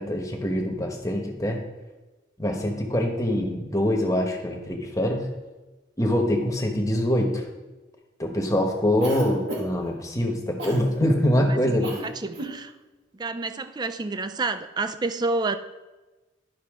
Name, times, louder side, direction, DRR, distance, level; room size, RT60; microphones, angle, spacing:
voice 1, 0.0-1.6 2.4-5.3 6.0-7.4 8.2-11.9, left 1 dB, 20° left, 2 dB, 1.1 m, -24 dB
Cough, 9.0-9.9 10.6-10.8 11.8-12.1 12.3-12.6, right 1 dB, 85° right, 1.8 m, -32 dB
voice 2, 12.2-12.7 13.2-15.6, right 3 dB, 25° right, 10 dB, 0.4 m, -28 dB
11.5 x 5.7 x 3.6 m, 1.2 s
head